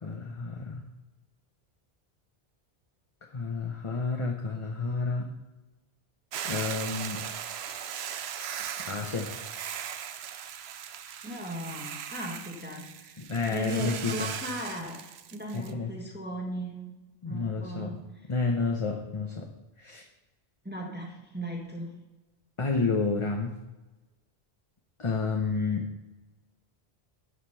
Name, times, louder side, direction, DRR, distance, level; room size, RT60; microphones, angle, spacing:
voice 1, 0.0-0.8 3.3-5.3 6.4-7.2 8.9-9.3 13.2-14.3 15.5-15.9 17.2-18.0 18.3-19.5 19.8-20.0 22.6-23.5 25.0-25.9, left 4 dB, 30° left, 2 dB, 0.8 m, -30 dB
Hiss / Boiling, 6.3-15.7, right 9 dB, 75° right, 0.9 m, -38 dB
voice 2, 11.2-13.2 13.5-16.9 17.2-18.3 20.6-22.0, right 1 dB, 10° right, -1 dB, 1.4 m, -38 dB
11.5 x 5.1 x 5.6 m, 1.1 s
omnidirectional pair, 1.1 m